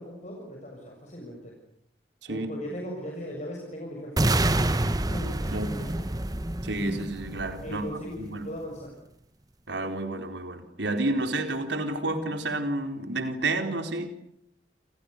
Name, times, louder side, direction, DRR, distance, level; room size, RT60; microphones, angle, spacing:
voice 1, 0.0-1.6 2.3-4.6 5.1-6.0 7.6-9.0, equal, 40° left, 0 dB, 7.0 m, -38 dB
sound 1, 4.2-8.2, right 1 dB, 20° right, 1.1 m, -27 dB
voice 2, 6.6-7.9 8.2-8.5 9.7-14.1, right 2 dB, 85° right, 6 dB, 4.2 m, -30 dB
30.0 x 27.5 x 6.8 m, 0.72 s
head